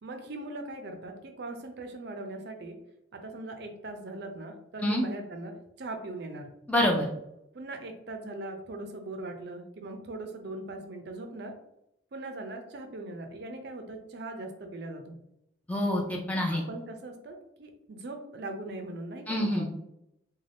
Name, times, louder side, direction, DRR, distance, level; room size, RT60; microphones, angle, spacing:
voice 1, 0.0-2.8 3.1-6.5 7.5-11.5 12.1-15.2 16.5-19.7, right 2 dB, 55° right, 5 dB, 0.4 m, -40 dB
voice 2, 6.7-7.1 15.7-16.6 19.3-19.7, left 1 dB, 5° left, -1 dB, 0.4 m, -26 dB
2.5 x 2.2 x 3.3 m, 0.82 s
head